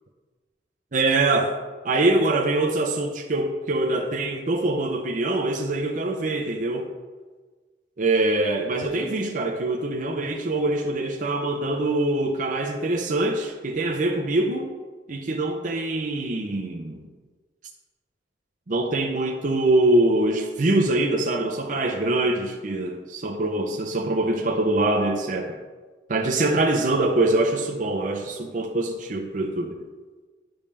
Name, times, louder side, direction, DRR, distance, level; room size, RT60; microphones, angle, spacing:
voice 1, 0.9-1.6 1.8-6.9 8.0-14.7 15.1-17.0 18.7-25.6 26.1-29.7, right 2 dB, 45° right, 1 dB, 0.6 m, -24 dB
10.0 x 5.2 x 3.3 m, 1.3 s
head